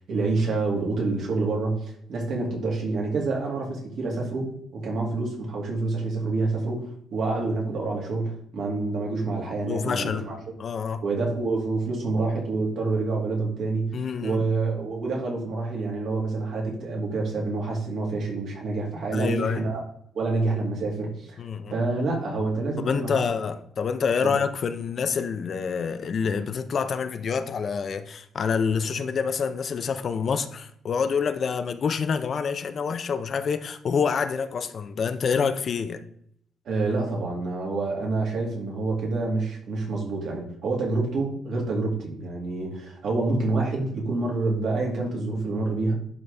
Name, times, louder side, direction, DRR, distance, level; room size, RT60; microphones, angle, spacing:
voice 1, 0.1-10.4 11.0-13.9 14.2-19.8 20.1-21.4 21.7-23.2 24.2-24.4 36.7-45.9, right 3 dB, 65° right, 2.3 m, -27 dB
voice 2, 9.7-10.3 10.6-11.0 13.9-14.4 19.1-19.6 21.4-21.7 22.8-36.0, left 6 dB, 45° left, 0.5 m, -27 dB
11.0 x 4.0 x 3.4 m
cardioid pair, 140°, 0 cm